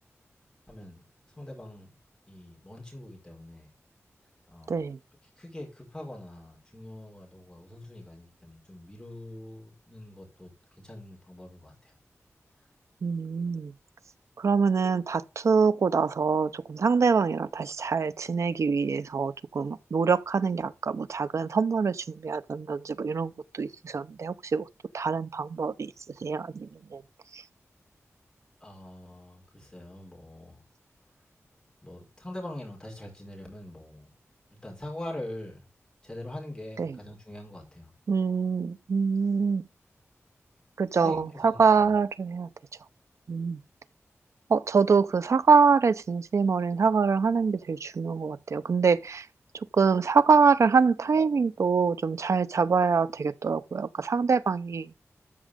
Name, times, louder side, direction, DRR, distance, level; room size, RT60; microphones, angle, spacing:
voice 1, 0.7-1.0 1.4-1.9 2.3-3.7 4.5-4.9 5.4-10.5 10.8-11.9 28.6-30.6 31.8-34.1 34.6-35.6 36.0-37.9 40.9-41.9, left 1 dB, 15° left, 5.0 m, -43 dB
voice 2, 4.7-5.0 13.0-13.7 14.4-24.7 24.9-25.9 26.2-27.0 27.3-27.4 36.8-37.0 38.1-39.6 40.8-42.5 43.3-43.6 44.5-49.3 49.5-54.9, right 5 dB, 70° right, 0.7 m, -25 dB
13.5 x 6.3 x 3.6 m
wide cardioid pair, 120°, 5 cm